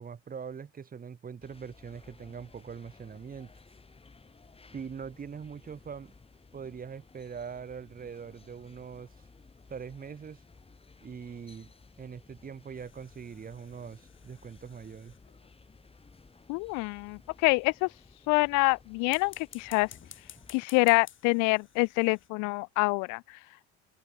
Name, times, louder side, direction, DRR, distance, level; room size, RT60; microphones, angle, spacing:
voice 1, 0.0-3.5 4.7-6.1 6.5-9.1 9.7-10.4 11.0-11.7 12.0-15.1, right 6 dB, 30° right, 2.4 m, -42 dB
sound 1, 1.4-20.6, left 4 dB, 20° left, 8.0 m, -57 dB
sound 2, 12.7-15.6 19.0-22.3, left 9 dB, 40° left, 3.9 m, -54 dB
voice 2, 16.5-17.9 18.3-19.9 20.5-23.2, left 28 dB, 80° left, 0.5 m, -26 dB
cardioid pair, 110°, 29 cm